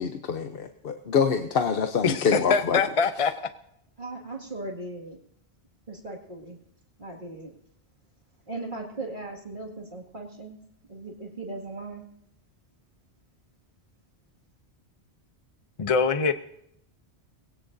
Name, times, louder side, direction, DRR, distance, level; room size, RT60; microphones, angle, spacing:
voice 1, 0.0-2.8, left 6 dB, 60° left, 1.0 m, -26 dB
voice 2, 2.0-3.3 15.8-16.3, left 5 dB, 35° left, 0.7 m, -23 dB
voice 3, 4.0-5.2 5.9-6.6 7.0-7.6 8.5-10.6 10.9-12.0, right 2 dB, 45° right, 2.3 m, -38 dB
20.5 x 17.5 x 2.7 m
omnidirectional pair, 1.1 m